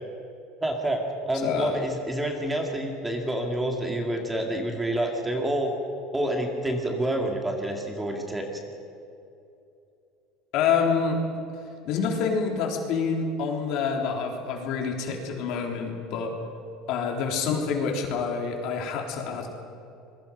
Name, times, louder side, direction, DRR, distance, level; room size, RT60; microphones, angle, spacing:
voice 1, 0.6-5.7 6.1-8.5, right 1 dB, 10° right, 2 dB, 2.3 m, -28 dB
voice 2, 1.3-1.7 10.5-11.2 11.9-16.3 16.9-19.5, left 5 dB, 55° left, 1 dB, 3.7 m, -27 dB
26.5 x 22.0 x 5.4 m, 2.7 s
cardioid pair, 155°, 0 cm